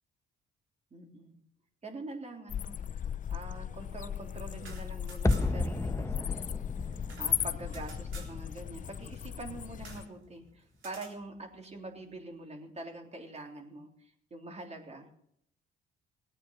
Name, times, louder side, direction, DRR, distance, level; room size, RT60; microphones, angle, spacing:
voice 1, 0.9-1.4 1.8-6.6 6.9-15.1, right 2 dB, 35° right, 3 dB, 3.4 m, -45 dB
sound 1, 2.5-10.1, left 9 dB, 40° left, 0.5 m, -37 dB
sound 2, 4.6-5.7 6.0-6.1 6.4-8.4 9.8-10.1 10.8-11.2, right 4 dB, 75° right, 3.9 m, -51 dB
sound 3, 5.2-10.2 10.4-10.5, left 2 dB, 15° left, 0.9 m, -34 dB
18.5 x 9.0 x 6.4 m, 0.72 s
cardioid pair, 90°, 20 cm